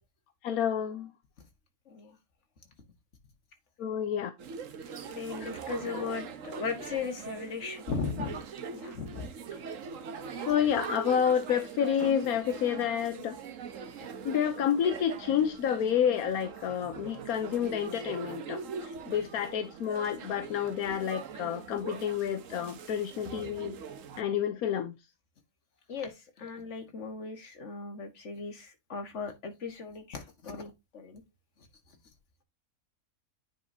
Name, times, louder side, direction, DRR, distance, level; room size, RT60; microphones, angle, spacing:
voice 1, 0.4-1.1 3.8-4.3 5.4-5.5 10.5-13.4 14.2-23.8 24.2-24.9, left 8 dB, 85° left, 1.2 m, -29 dB
voice 2, 1.9-2.2 5.1-8.4 8.7-9.3 25.9-31.2, left 5 dB, 55° left, 1.8 m, -37 dB
sound 1, 4.4-24.2, right 6 dB, 65° right, 1.2 m, -42 dB
9.3 x 5.3 x 2.7 m
omnidirectional pair, 1.5 m